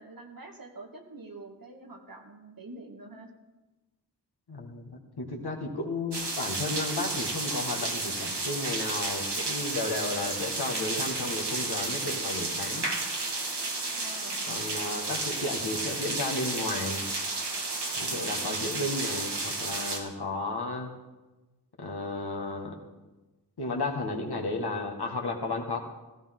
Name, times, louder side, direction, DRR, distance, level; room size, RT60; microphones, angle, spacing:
voice 1, 0.0-3.3 13.9-14.5 18.3-18.6, right 2 dB, 55° right, 2 dB, 2.0 m, -46 dB
voice 2, 4.5-12.9 14.5-17.1 18.0-20.9 21.8-22.8 23.6-25.8, left 2 dB, 70° left, 0 dB, 1.9 m, -33 dB
sound 1, 6.1-20.0, right 3 dB, 80° right, 2.2 m, -32 dB
16.0 x 15.0 x 3.8 m, 1.1 s
wide cardioid pair, 60°, 40 cm